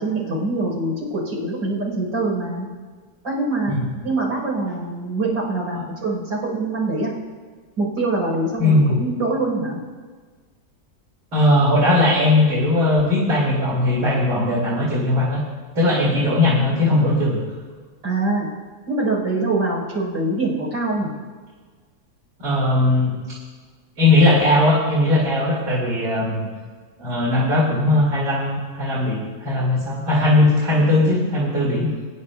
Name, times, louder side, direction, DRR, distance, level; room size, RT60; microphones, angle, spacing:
voice 1, 0.0-2.7 3.2-3.8 4.0-7.1 7.8-9.8 18.0-18.5 18.9-21.1, right 2 dB, 90° right, -5 dB, 5.2 m, -24 dB
voice 2, 8.6-9.0 11.3-15.4 15.7-17.4 22.4-23.1 24.0-26.5 27.0-31.9, left 2 dB, 65° right, -7 dB, 3.1 m, -18 dB
24.5 x 10.5 x 2.3 m, 1.5 s
omnidirectional pair, 1.9 m